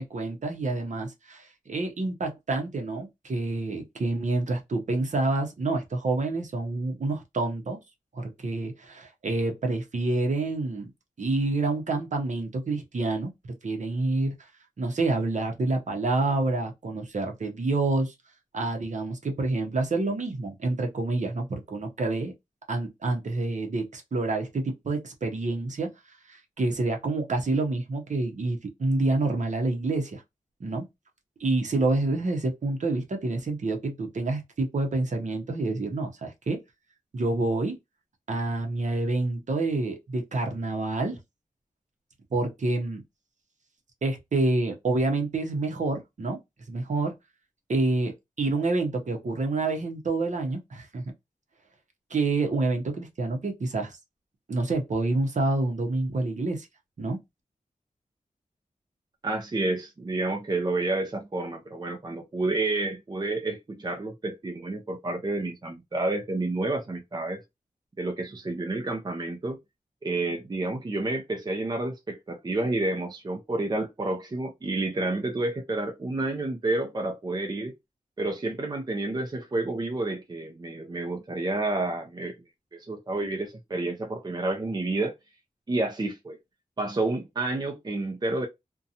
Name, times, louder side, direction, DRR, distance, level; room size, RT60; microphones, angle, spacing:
voice 1, 0.0-7.8 8.1-10.9 11.2-13.3 13.6-14.5 14.8-18.1 18.5-22.3 22.7-25.9 26.3-30.2 30.6-30.9 31.4-36.6 37.1-37.7 38.3-41.2 42.3-43.0 44.0-46.4 46.7-47.1 47.7-51.0 52.1-54.0 54.5-56.7 57.0-57.2, right 2 dB, 55° right, 0.8 m, -28 dB
voice 2, 59.2-67.4 68.0-69.6 70.0-77.7 78.2-82.4 82.7-85.1 85.7-86.4 86.8-88.5, right 2 dB, 30° right, 0.5 m, -29 dB
2.5 x 2.2 x 2.7 m
wide cardioid pair, 110°, 15 cm